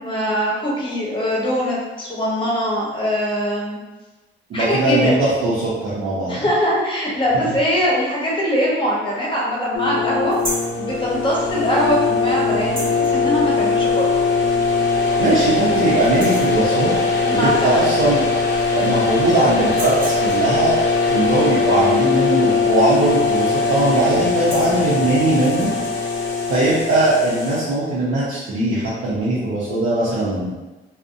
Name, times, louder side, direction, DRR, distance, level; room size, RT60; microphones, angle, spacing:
voice 1, 0.0-3.8 4.5-5.1 6.2-10.4 10.8-14.2 17.2-17.9, equal, 25° left, -5 dB, 0.9 m, -22 dB
voice 2, 4.5-6.4 7.3-7.5 15.2-16.9 17.3-18.2 18.7-20.7 21.1-25.7 26.5-30.5, right 2 dB, 70° right, -9 dB, 0.6 m, -20 dB
sound 1, 9.7-27.6, left 4 dB, 65° left, 0.5 m, -20 dB
sound 2, 10.3-10.8 12.6-13.1 14.5-14.6 15.1-15.2 15.5-16.6 18.0-18.1 18.3-19.0 19.6-20.5 22.9-23.2 23.5-23.8 24.2-24.8 25.5-25.9, right 1 dB, 45° right, 1.1 m, -32 dB
2.5 x 2.0 x 2.5 m, 1.1 s
cardioid pair, 90°, 20 cm